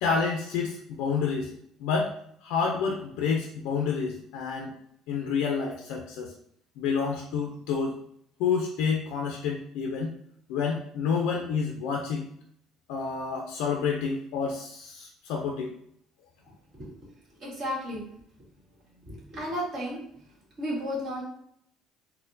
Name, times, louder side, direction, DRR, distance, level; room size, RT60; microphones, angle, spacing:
voice 1, 0.0-1.5 1.8-2.1 2.4-4.8 5.1-6.3 6.8-8.0 8.4-10.1 10.5-12.3 12.9-15.7, left 5 dB, 90° left, 1 dB, 0.4 m, -29 dB
voice 2, 17.4-18.0 18.9-20.0 20.6-21.2, equal, 40° right, -5 dB, 1.5 m, -33 dB
4.2 x 2.1 x 2.6 m, 0.69 s
cardioid pair, 135°, 0 cm